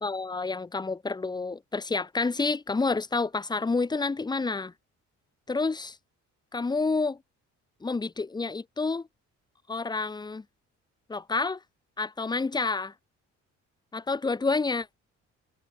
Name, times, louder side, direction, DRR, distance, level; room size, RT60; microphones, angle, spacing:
voice 1, 0.0-4.7 5.5-6.0 6.5-7.2 7.8-9.1 9.7-10.4 11.1-11.6 12.0-12.9 13.9-15.0, left 3 dB, 15° left, 0.6 m, -29 dB
cardioid pair, 90°, 30 cm